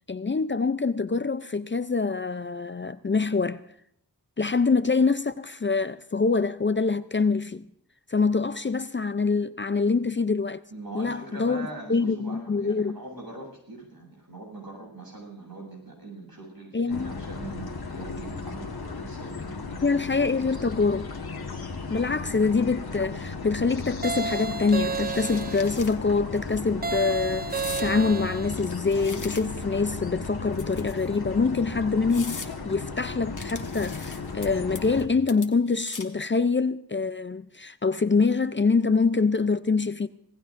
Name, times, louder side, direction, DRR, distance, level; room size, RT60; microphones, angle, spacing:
voice 1, 0.1-3.6 4.4-7.7 8.1-10.6 10.9-13.0 16.7-17.1 19.8-21.1 21.9-40.1, left 4 dB, 30° left, 0.5 m, -25 dB
voice 2, 10.7-20.1 20.5-20.7, right 2 dB, 75° right, 7.7 m, -42 dB
sound 1, 16.9-35.1, left 4 dB, 90° left, 1.5 m, -36 dB
sound 2, 24.0-25.8 26.8-28.6, right 4 dB, 25° right, 0.5 m, -31 dB
sound 3, 24.7-25.9 26.4-26.6 27.5-27.9 28.5-29.7 30.5-31.1 31.6-31.7 32.1-32.5 33.4-34.5 34.7-35.0 35.3-36.2, left 4 dB, 55° left, 1.4 m, -41 dB
25.5 x 18.0 x 2.6 m
wide cardioid pair, 70°, 36 cm